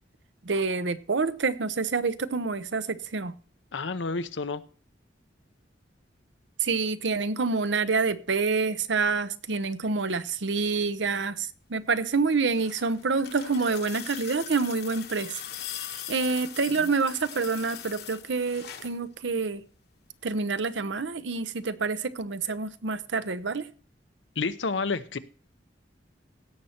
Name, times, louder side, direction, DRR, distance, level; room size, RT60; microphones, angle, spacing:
voice 1, 0.4-3.3 6.6-15.4 15.8-19.6 20.2-23.7, right 4 dB, 75° right, 0.8 m, -27 dB
voice 2, 3.7-4.6 16.8-16.9 24.4-25.2, left 4 dB, 85° left, 0.8 m, -30 dB
sound 1, 12.2-19.0 20.3-20.4, left 10 dB, 60° left, 1.2 m, -41 dB
17.0 x 6.5 x 4.3 m
head